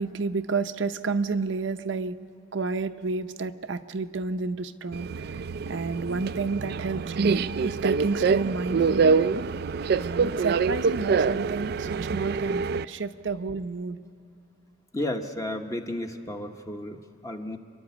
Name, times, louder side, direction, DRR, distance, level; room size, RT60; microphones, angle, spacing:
voice 1, 0.0-2.2 2.5-5.4 5.7-9.3 10.0-14.0, right 4 dB, 80° right, 8 dB, 0.7 m, -30 dB
Subway metro underground, 4.9-12.9, right 5 dB, 55° right, 0.4 m, -26 dB
voice 2, 14.9-17.6, left 1 dB, 20° left, 4 dB, 1.1 m, -33 dB
29.0 x 11.5 x 8.3 m, 2.7 s
head